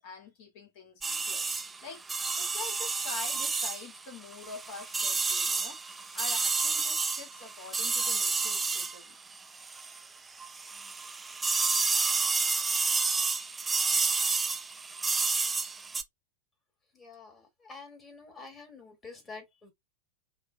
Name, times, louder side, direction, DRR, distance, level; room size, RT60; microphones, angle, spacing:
voice 1, 0.0-2.0 2.4-9.2, left 4 dB, 45° left, 2.4 m, -45 dB
sound 1, 1.0-10.1 10.4-16.0, right 4 dB, 15° right, 0.5 m, -30 dB
voice 2, 16.9-19.7, left 4 dB, 15° left, 2.3 m, -48 dB
4.9 x 3.3 x 2.3 m
figure-of-eight pair, 90°, 0 cm